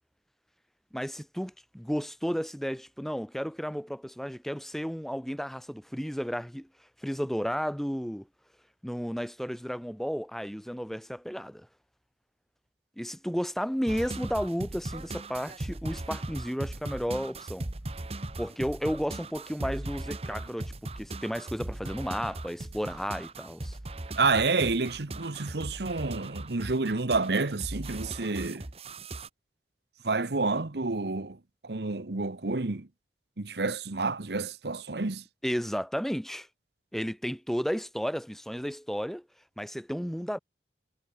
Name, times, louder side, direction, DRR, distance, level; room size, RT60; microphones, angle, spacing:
voice 1, 0.9-6.7 7.0-8.3 8.8-11.7 13.0-17.7 18.4-23.8 35.4-36.5 36.9-39.2 39.6-40.4, equal, ahead, 2.8 m, -33 dB
sound 1, 13.9-29.3, right 2 dB, 35° right, 1.2 m, -38 dB
voice 2, 24.2-28.7 30.0-32.9 33.4-35.2, right 3 dB, 70° right, 1.1 m, -29 dB
head